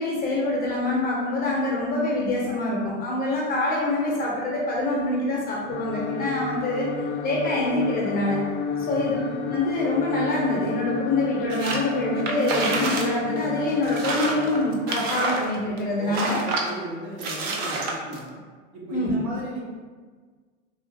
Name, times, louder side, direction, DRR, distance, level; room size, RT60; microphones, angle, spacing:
voice 1, 0.0-6.9 7.2-8.4 8.8-16.4 18.9-19.2, left 1 dB, 25° left, -4 dB, 0.8 m, -25 dB
sound 1, 5.7-14.7, left 5 dB, 45° left, 0.4 m, -31 dB
voice 2, 8.8-9.1 16.0-18.4 18.7-19.6, right 1 dB, 50° right, -4 dB, 1.1 m, -36 dB
sound 2, 11.5-11.8 12.2-13.1 13.4-13.5 13.8-15.8 16.1-16.7 17.2-18.2, right 3 dB, 25° right, 0.3 m, -28 dB
3.1 x 2.8 x 2.7 m, 1.5 s
hypercardioid pair, 110°, 38 cm